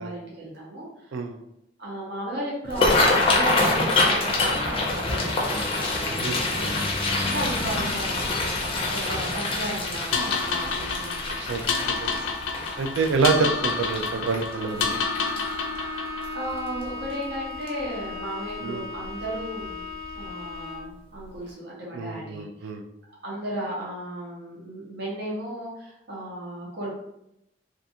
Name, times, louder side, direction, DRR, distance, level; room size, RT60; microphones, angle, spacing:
voice 1, 0.0-1.2 1.8-6.6 7.2-8.3 8.9-11.7 16.3-19.8 20.1-22.7 23.2-26.9, right 1 dB, 60° right, -5 dB, 0.7 m, -35 dB
sound 1, 2.6-15.8 16.2-16.5 16.8-17.3 17.7-17.8 19.1-19.2 19.6-19.7 20.2-20.3, left 2 dB, 30° left, 0.5 m, -26 dB
sound 2, 10.1-16.4, left 5 dB, 90° left, 0.4 m, -29 dB
voice 2, 12.8-15.0 18.6-18.9 21.9-22.8, right 4 dB, 80° right, 6 dB, 0.3 m, -26 dB
Bowed string instrument, 14.5-21.0, left 3 dB, 20° right, 0.9 m, -37 dB
2.4 x 2.3 x 2.7 m, 0.82 s
head